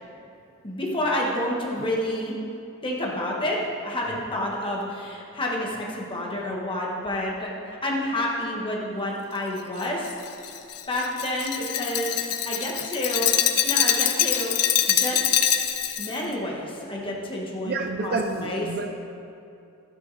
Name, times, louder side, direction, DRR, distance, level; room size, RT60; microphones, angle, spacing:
voice 1, 0.6-2.4 2.8-10.1 10.9-13.3 13.6-14.5 15.0-15.4 16.0-18.7, left 1 dB, 25° left, -3 dB, 1.7 m, -29 dB
Glass, 9.8-16.2, left 10 dB, 80° left, 0.8 m, -24 dB
voice 2, 17.6-18.9, right 3 dB, 45° right, 6 dB, 0.6 m, -29 dB
12.0 x 9.6 x 4.2 m, 2.7 s
head